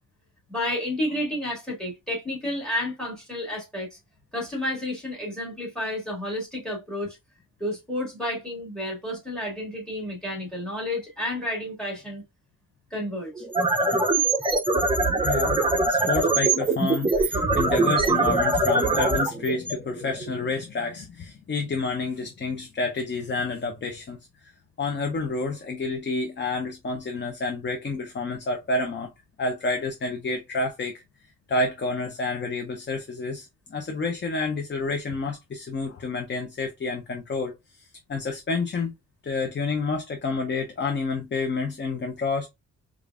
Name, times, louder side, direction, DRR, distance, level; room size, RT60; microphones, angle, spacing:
voice 1, 0.5-4.0 4.3-7.2 7.6-12.2 12.9-13.5, left 1 dB, ahead, 1.9 m, -31 dB
sound 1, 13.4-20.5, right 2 dB, 15° right, 0.5 m, -23 dB
voice 2, 15.2-15.6 15.9-24.5 24.8-29.1 29.4-31.0 31.5-38.9 39.2-42.5, left 3 dB, 35° left, 0.6 m, -29 dB
5.0 x 2.5 x 2.3 m
wide cardioid pair, 150°, 33 cm